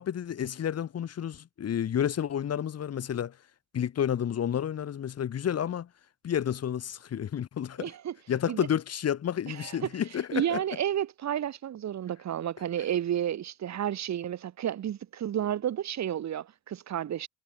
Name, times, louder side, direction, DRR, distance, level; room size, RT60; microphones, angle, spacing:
voice 1, 0.0-3.4 3.7-5.9 6.2-7.9 8.3-10.6, left 9 dB, 55° left, 2.1 m, -30 dB
voice 2, 7.8-8.1 8.5-8.6 9.5-9.9 10.3-17.3, right 10 dB, 65° right, 2.6 m, -31 dB
cardioid pair, 90°, 30 cm